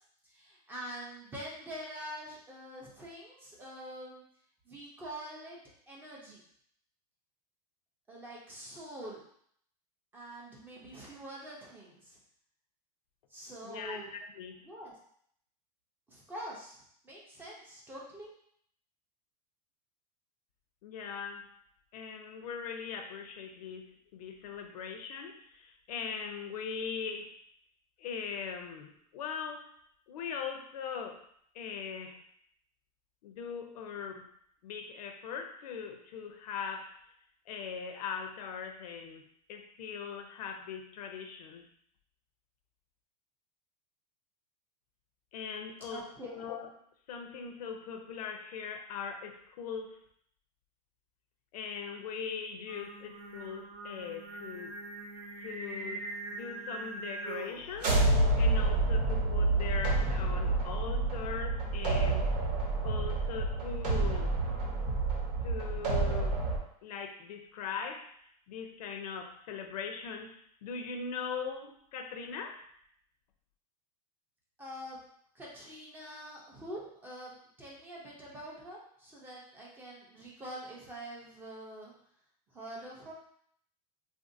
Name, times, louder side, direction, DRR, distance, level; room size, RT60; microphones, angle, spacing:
voice 1, 0.3-4.2 4.7-5.6 5.9-6.4 8.1-9.2 10.1-12.2 13.3-14.1 14.7-14.9 16.1-18.3 45.9-46.4 74.6-75.0 75.3-77.3 77.6-81.9 82.5-83.1, right 1 dB, 10° right, -4 dB, 0.5 m, -45 dB
voice 2, 13.6-14.7 20.8-21.5 21.9-27.3 28.0-29.7 30.1-31.2 31.5-32.2 33.2-34.3 34.6-37.0 37.5-41.7 45.3-46.7 47.1-50.0 51.5-54.7 55.4-58.0 58.3-62.3 62.8-64.4 65.4-66.4 66.8-68.1 68.5-72.6, left 6 dB, 70° left, 5 dB, 0.5 m, -40 dB
Singing, 52.7-57.7, right 2 dB, 65° right, 0.8 m, -42 dB
sound 1, 57.7-66.6, right 2 dB, 90° right, 1.0 m, -29 dB
3.6 x 2.5 x 2.6 m, 0.67 s
supercardioid pair, 165°, 20 cm